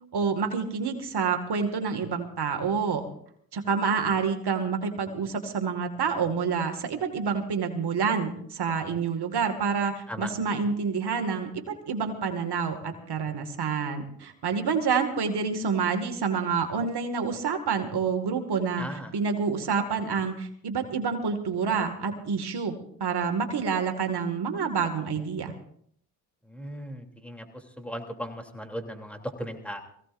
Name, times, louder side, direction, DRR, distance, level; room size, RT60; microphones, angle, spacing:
voice 1, 0.1-3.0 3.5-18.9 19.1-25.5, right 5 dB, 55° right, 5 dB, 2.2 m, -28 dB
voice 2, 18.8-19.1 26.4-29.8, equal, 5° left, 3 dB, 3.2 m, -37 dB
23.0 x 16.5 x 2.6 m, 0.65 s
supercardioid pair, 65°, 47 cm